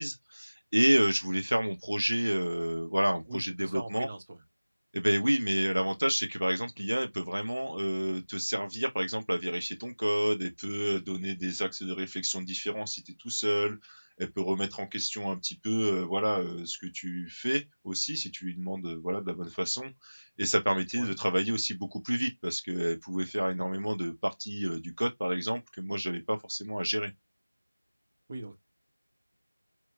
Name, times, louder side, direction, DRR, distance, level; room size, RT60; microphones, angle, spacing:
voice 1, 0.0-4.1 4.9-27.1, equal, 60° right, 0.7 m, -30 dB
voice 2, 3.3-4.4 21.0-21.1 28.3-28.6, right 2 dB, 15° right, 0.4 m, -41 dB
4.5 x 2.2 x 3.3 m
figure-of-eight pair, 175°, 0 cm